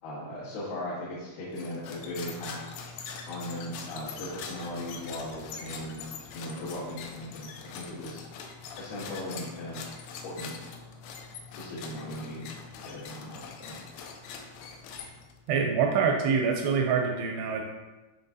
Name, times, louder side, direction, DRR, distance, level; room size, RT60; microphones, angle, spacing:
voice 1, 0.0-2.8 3.3-6.0 6.3-8.3 8.8-9.8 10.2-10.5 11.6-12.5 12.8-13.8, left 1 dB, 65° left, -11 dB, 3.3 m, -38 dB
sound 1, 1.5-15.5, left 5 dB, 80° left, 2.3 m, -43 dB
voice 2, 15.5-17.6, right 6 dB, 80° right, 2 dB, 2.4 m, -25 dB
10.0 x 3.9 x 2.7 m, 1.1 s
omnidirectional pair, 5.1 m